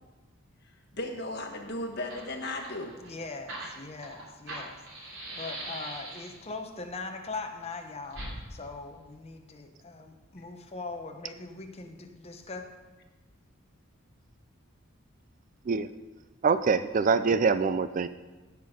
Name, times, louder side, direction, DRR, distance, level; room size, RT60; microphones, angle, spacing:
voice 1, 0.9-2.9, left 1 dB, 50° left, 3 dB, 1.5 m, -35 dB
Fire, 1.6-1.7 1.9-6.5 8.1-8.3, right 1 dB, 65° right, 3.2 m, -41 dB
voice 2, 3.0-8.2 8.5-12.7, left 3 dB, 30° left, 4 dB, 1.0 m, -41 dB
voice 3, 16.4-18.1, right 5 dB, 40° right, 13 dB, 0.4 m, -24 dB
16.0 x 6.0 x 5.2 m, 1.2 s
head